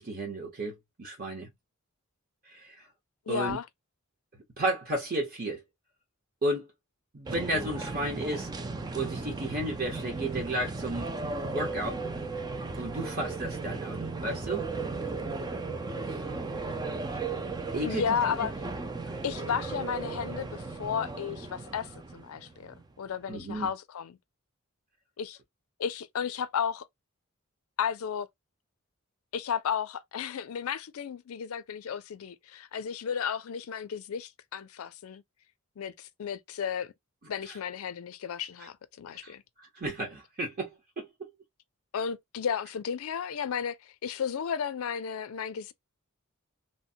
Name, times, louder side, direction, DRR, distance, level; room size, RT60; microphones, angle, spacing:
voice 1, 0.0-1.5 2.5-2.9 3.3-3.6 4.6-5.6 6.4-6.7 7.1-8.5 8.9-11.1 11.5-12.0 12.7-14.7 16.0-16.2 17.7-18.0 18.4-18.5 23.3-23.7 37.5-37.6 38.6-38.7 39.2-41.3, right 1 dB, 45° right, 1.0 m, -33 dB
voice 2, 3.3-3.6 17.8-18.5 19.2-24.2 25.2-25.4 25.8-26.9 27.8-28.3 29.3-35.2 35.8-36.9 37.3-39.4 41.9-43.8 44.0-45.7, left 7 dB, 80° left, 0.4 m, -33 dB
sound 1, 7.3-23.1, right 3 dB, 20° right, 0.3 m, -36 dB
3.1 x 2.1 x 2.6 m
head